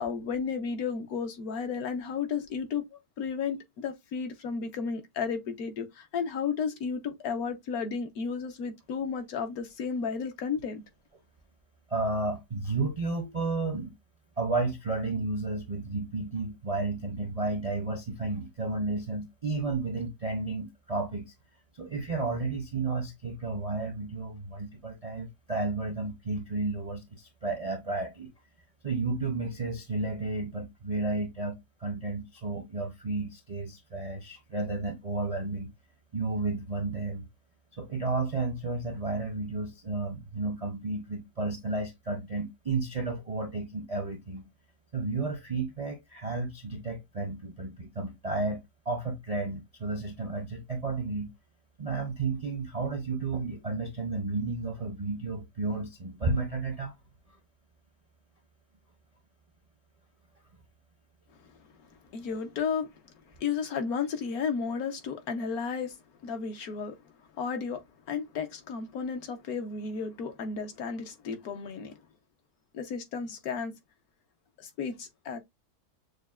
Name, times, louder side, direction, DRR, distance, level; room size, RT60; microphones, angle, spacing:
voice 1, 0.0-10.8 62.1-62.9 63.4-66.0 66.2-66.9 67.4-72.0 72.7-73.7 74.6-75.4, left 6 dB, 70° left, 1.2 m, -33 dB
voice 2, 11.9-13.9 14.4-21.2 21.8-28.3 28.8-35.7 36.1-37.3 37.7-44.5 44.9-51.3 51.8-56.9, right 3 dB, 45° right, 0.4 m, -32 dB
6.5 x 2.2 x 2.3 m
omnidirectional pair, 1.7 m